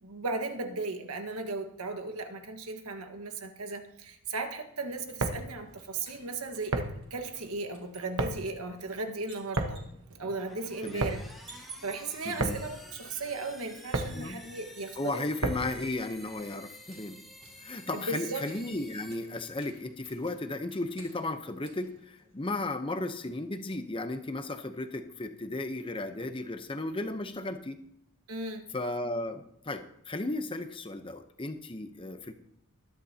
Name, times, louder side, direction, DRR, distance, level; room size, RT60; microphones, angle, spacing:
voice 1, 0.0-9.8 10.2-11.2 11.5-15.2 17.9-18.4 28.3-28.7, right 3 dB, 85° right, 6 dB, 1.5 m, -36 dB
sound 1, 5.0-15.9, right 2 dB, 65° right, 1.2 m, -36 dB
sound 2, 5.6-7.1 7.3-12.4 15.2-22.7, right 4 dB, 25° right, 2.9 m, -56 dB
sound 3, 10.2-19.9, equal, ahead, 2.0 m, -51 dB
voice 2, 12.2-12.6 14.1-14.4 15.0-17.2 17.6-27.8 28.7-32.3, left 2 dB, 25° left, 8 dB, 0.8 m, -35 dB
20.5 x 10.5 x 2.9 m, 0.75 s
head